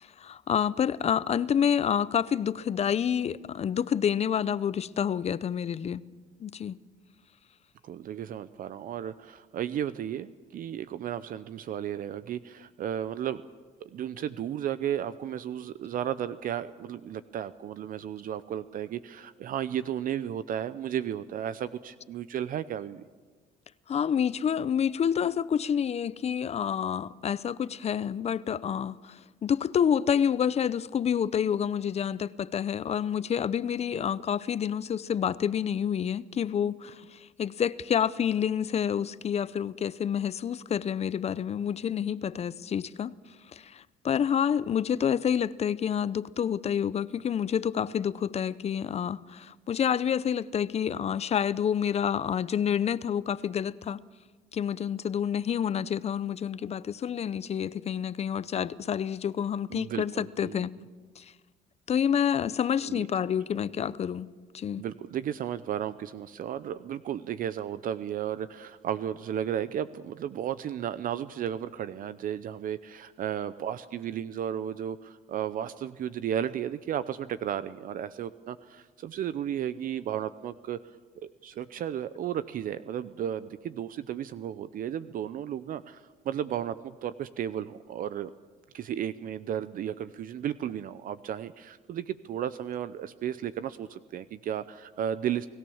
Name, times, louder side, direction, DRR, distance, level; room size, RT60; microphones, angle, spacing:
voice 1, 0.0-6.0 6.4-6.8 23.9-43.1 43.5-54.0 54.5-60.7 61.2-61.3 61.9-64.3 64.5-64.8, left 8 dB, 40° left, 0.6 m, -28 dB
voice 2, 7.8-13.4 13.8-23.1 59.7-60.7 62.8-63.1 64.7-80.8 81.2-88.3 88.7-95.5, right 10 dB, 55° right, 0.7 m, -34 dB
29.5 x 17.5 x 7.2 m
cardioid pair, 110°, 17 cm